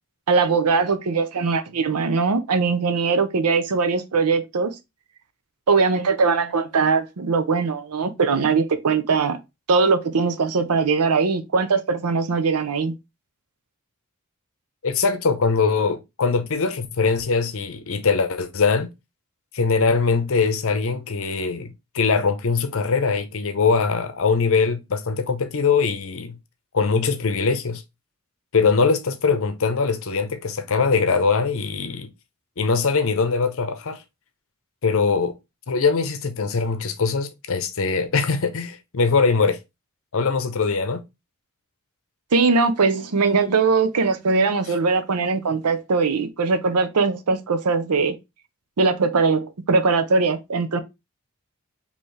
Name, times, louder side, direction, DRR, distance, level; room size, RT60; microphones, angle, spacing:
voice 1, 0.3-4.7 5.7-9.4 9.7-12.9 42.3-48.2 48.8-50.8, right 4 dB, 85° right, 0.6 m, -21 dB
voice 2, 14.8-18.9 19.5-26.4 26.7-27.8 28.5-32.1 32.6-34.0 34.8-35.3 35.7-39.6 40.1-41.0, left 4 dB, 65° left, 0.7 m, -22 dB
4.5 x 2.9 x 3.2 m
head